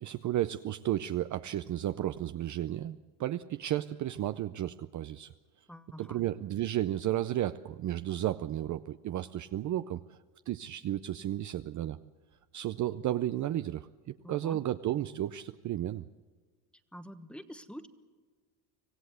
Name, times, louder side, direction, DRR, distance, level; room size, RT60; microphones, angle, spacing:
voice 1, 0.0-5.3 6.0-10.2 10.5-12.0 12.5-16.0, right 13 dB, 40° right, 11 dB, 0.6 m, -33 dB
voice 2, 5.7-6.2 14.2-14.6 16.9-17.9, equal, ahead, 10 dB, 1.2 m, -46 dB
25.5 x 16.0 x 8.0 m, 1.5 s
cardioid pair, 120°, 48 cm